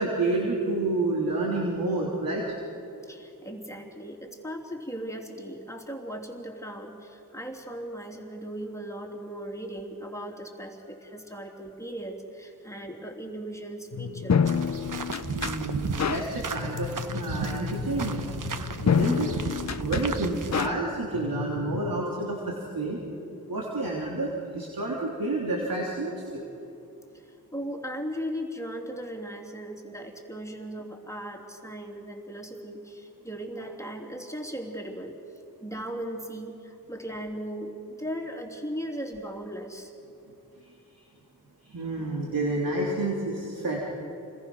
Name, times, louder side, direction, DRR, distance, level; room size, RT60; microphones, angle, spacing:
voice 1, 0.0-2.4 15.3-18.2 18.8-19.3 19.8-23.0 23.5-26.4 40.6-40.7 41.6-43.8, right 2 dB, 85° right, -3 dB, 3.2 m, -29 dB
voice 2, 3.0-14.5 27.1-35.2 35.6-39.9, equal, 10° left, 2 dB, 3.2 m, -37 dB
sound 1, 13.9-22.0, left 6 dB, 50° left, 0.8 m, -29 dB
sound 2, 14.5-20.7, right 4 dB, 65° right, 1.3 m, -34 dB
28.5 x 21.0 x 6.3 m, 2.8 s
cardioid pair, 50°, 34 cm